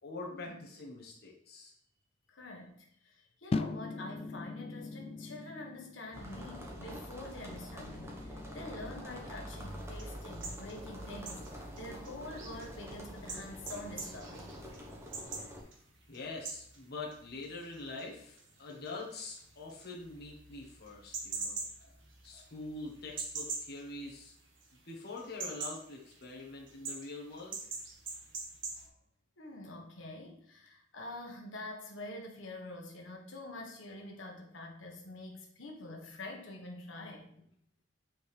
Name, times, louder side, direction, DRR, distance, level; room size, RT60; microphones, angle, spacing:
voice 1, 0.0-1.7 3.2-3.3 16.1-21.6 22.2-24.3 24.8-27.6, left 3 dB, 60° left, -2 dB, 1.3 m, -44 dB
voice 2, 2.3-14.5 21.3-21.4 21.8-22.0 22.3-22.5 28.1-28.2 28.7-28.9 29.4-37.5, left 2 dB, 85° left, 0 dB, 1.3 m, -46 dB
sound 1, 3.5-9.7, left 3 dB, 30° left, 0.3 m, -42 dB
sound 2, 6.1-15.6, equal, 15° right, 1.1 m, -46 dB
sound 3, 9.6-24.8 25.1-28.9, right 4 dB, 75° right, 1.4 m, -44 dB
7.8 x 4.5 x 3.3 m, 0.69 s
head